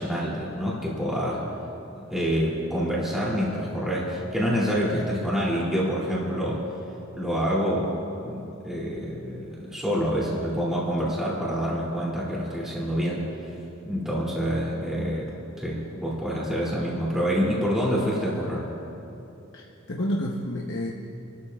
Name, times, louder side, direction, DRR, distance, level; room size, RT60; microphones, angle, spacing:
voice 1, 0.0-1.5 2.1-6.7 7.2-13.5 13.8-18.7, equal, ahead, -6 dB, 2.7 m, -27 dB
voice 2, 19.5-20.9, left 1 dB, 55° left, -2 dB, 0.9 m, -29 dB
28.5 x 13.0 x 2.4 m, 2.9 s
head